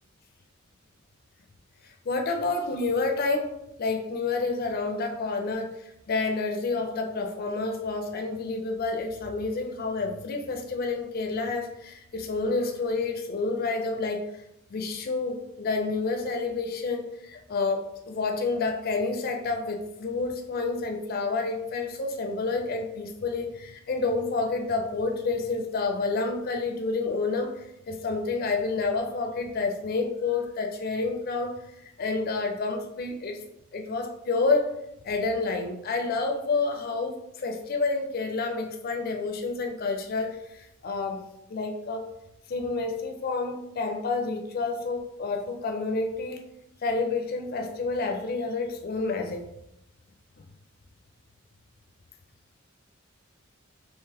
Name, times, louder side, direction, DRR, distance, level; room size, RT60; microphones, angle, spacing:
voice 1, 1.8-3.5 3.8-14.2 14.7-31.5 32.0-33.4 33.7-34.7 35.0-41.2 41.5-42.1 42.5-46.4 46.8-49.5, left 3 dB, 45° left, 4 dB, 0.4 m, -29 dB
3.8 x 3.0 x 2.8 m, 0.82 s
head